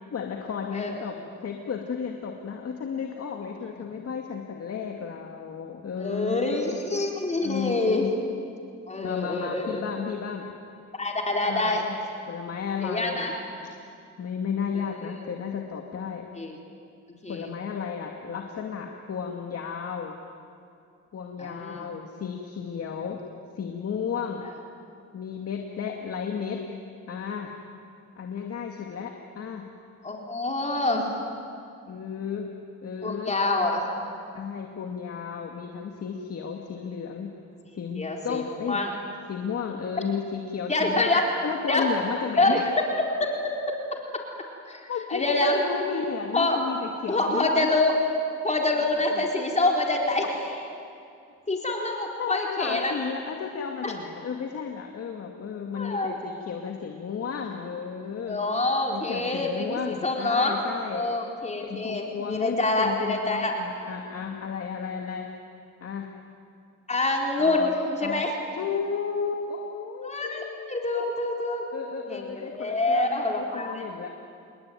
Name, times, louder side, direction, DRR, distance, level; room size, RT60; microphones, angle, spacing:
voice 1, 0.1-6.8 7.4-8.1 9.0-10.5 11.4-11.9 12.3-13.3 14.2-16.2 17.3-20.2 21.1-23.2 23.6-24.4 25.1-26.6 27.1-27.5 28.2-29.7 31.9-32.5 32.8-33.3 34.3-37.3 37.8-38.8 39.3-42.7 44.9-47.7 48.8-49.2 50.2-50.4 52.2-58.4 58.9-61.0 61.6-65.3 65.8-66.1 67.4-67.7 68.0-68.2 68.5-70.9 71.7-74.1, left 6 dB, 50° left, 2 dB, 2.4 m, -33 dB
voice 2, 6.0-8.1 8.9-9.8 11.0-11.9 12.8-13.3 14.7-15.2 16.4-16.5 17.2-17.5 21.4-21.9 30.0-31.1 33.0-33.9 38.0-38.4 38.7-38.9 40.7-41.3 41.7-41.9 42.4-42.6 43.0-43.8 44.7-45.6 46.3-46.6 47.1-48.0 48.4-50.3 51.5-52.9 53.8-53.9 55.7-56.1 58.2-60.5 60.9-63.5 66.9-67.7 68.0-68.3 70.0-71.7 72.1-74.1, left 2 dB, 20° left, 1 dB, 4.2 m, -26 dB
29.0 x 21.5 x 9.4 m, 2.5 s
cardioid pair, 90°, 30 cm